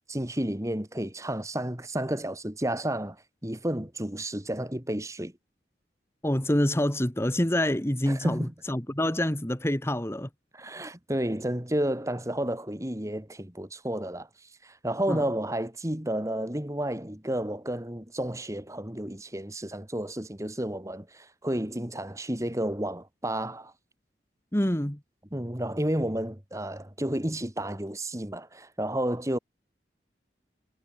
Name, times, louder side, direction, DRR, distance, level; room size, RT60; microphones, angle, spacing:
voice 1, 0.0-5.3 8.1-8.5 10.5-14.3 14.6-23.7 25.3-29.4, right 1 dB, 20° right, 2.3 m, -31 dB
voice 2, 6.2-10.3 15.1-15.2 24.5-25.0, left 1 dB, 15° left, 1.6 m, -26 dB
head